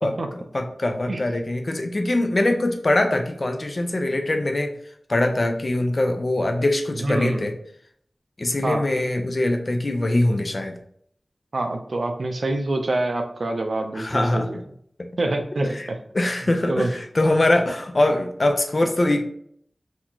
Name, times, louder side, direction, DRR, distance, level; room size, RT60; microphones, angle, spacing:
voice 1, 0.0-4.7 5.1-7.5 8.4-10.7 13.9-14.5 15.7-15.9 16.1-19.2, left 1 dB, 50° left, 5 dB, 0.5 m, -22 dB
voice 2, 7.0-7.5 8.6-8.8 11.5-14.6 15.2-16.0 16.4-16.9 17.3-17.4, right 2 dB, 70° right, 5 dB, 0.5 m, -26 dB
4.1 x 2.8 x 2.9 m, 0.65 s
wide cardioid pair, 70°, 0 cm